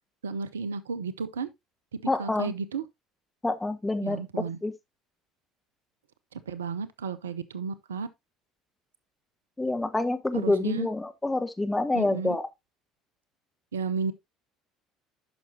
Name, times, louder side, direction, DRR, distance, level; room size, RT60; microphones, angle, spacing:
voice 1, 0.2-1.5 1.9-2.8 4.0-4.6 6.3-8.1 10.3-10.9 11.9-12.4 13.7-14.1, right 5 dB, 80° right, 0.6 m, -33 dB
voice 2, 2.1-2.5 3.4-4.7 9.6-12.5, left 2 dB, 15° left, 1.1 m, -27 dB
10.5 x 6.0 x 2.7 m
figure-of-eight pair, 60°, 0 cm